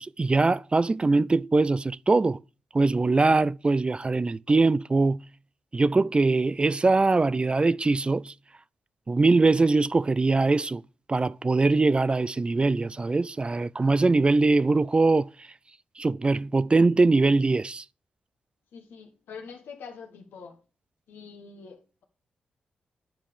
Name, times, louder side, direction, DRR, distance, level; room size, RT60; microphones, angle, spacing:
voice 1, 0.0-2.4 2.7-5.2 5.7-8.3 9.1-10.8 11.1-15.5 16.0-17.8, right 3 dB, 30° right, 0.3 m, -22 dB
voice 2, 18.7-20.6 21.1-22.0, left 5 dB, 80° left, 1.4 m, -45 dB
10.0 x 4.9 x 3.6 m
supercardioid pair, 40°, 3 cm